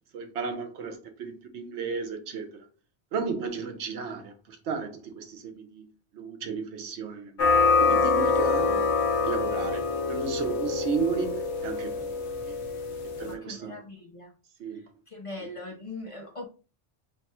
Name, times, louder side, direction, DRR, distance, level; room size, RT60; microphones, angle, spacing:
voice 1, 0.1-2.7 3.1-5.9 6.1-7.4 7.9-8.9 9.2-12.1 12.5-12.6 13.2-13.8 14.6-14.8, right 5 dB, 85° right, 1.0 m, -34 dB
sound 1, 7.4-13.3, left 4 dB, 80° left, 1.0 m, -25 dB
voice 2, 13.2-14.3 15.1-16.4, left 2 dB, 40° left, 0.5 m, -40 dB
3.3 x 2.3 x 4.2 m
omnidirectional pair, 1.1 m